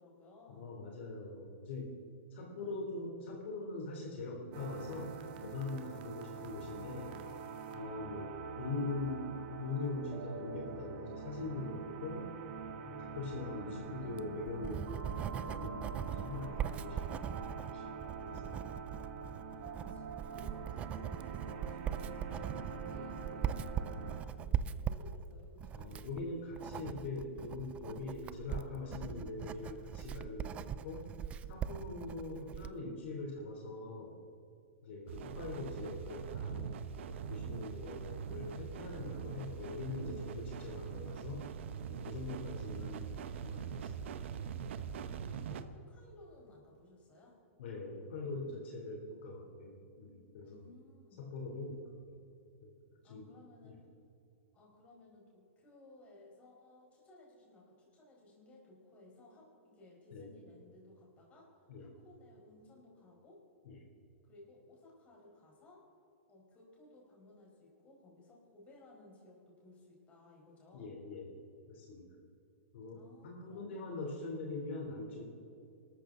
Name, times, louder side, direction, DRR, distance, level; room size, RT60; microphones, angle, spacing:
voice 1, 0.0-0.7 5.9-6.4 19.5-26.0 44.9-47.4 50.4-51.2 53.0-53.8 54.5-61.5 61.8-63.4 64.3-65.8 66.3-70.9 72.9-74.1, left 2 dB, 20° left, -3 dB, 4.8 m, -59 dB
voice 2, 0.6-1.9 2.3-5.1 5.4-7.2 7.7-8.3 8.6-12.3 12.9-17.4 17.7-18.7 19.5-19.6 25.7-31.1 31.5-34.2 34.8-36.7 37.1-41.5 41.9-43.1 43.4-44.1 47.6-50.6 51.2-51.8 52.6-52.7 53.0-53.3 53.6-53.8 60.1-60.3 61.7-61.9 63.7-63.8 70.7-71.3 71.7-72.1 72.7-75.3, left 3 dB, 60° left, 0 dB, 3.4 m, -42 dB
sound 1, 4.5-24.2, right 5 dB, 45° right, 1.8 m, -45 dB
Writing, 14.0-32.8, right 9 dB, 20° right, 0.4 m, -41 dB
sound 2, 35.1-45.6, right 7 dB, 60° right, 1.0 m, -43 dB
25.0 x 13.5 x 3.9 m, 2.7 s
hypercardioid pair, 155°, 7 cm